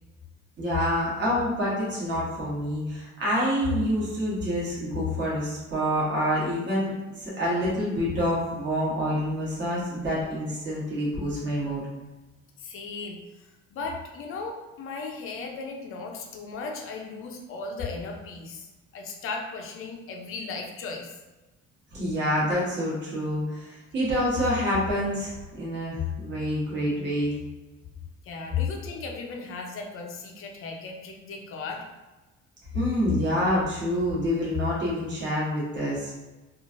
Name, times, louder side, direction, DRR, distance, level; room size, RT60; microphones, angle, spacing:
voice 1, 0.6-11.8 21.9-27.3 32.7-36.2, equal, 35° right, -7 dB, 1.1 m, -27 dB
voice 2, 12.6-21.2 28.2-31.8, left 3 dB, 45° left, 2 dB, 0.5 m, -37 dB
3.0 x 2.5 x 2.5 m, 1.1 s
cardioid pair, 155°, 31 cm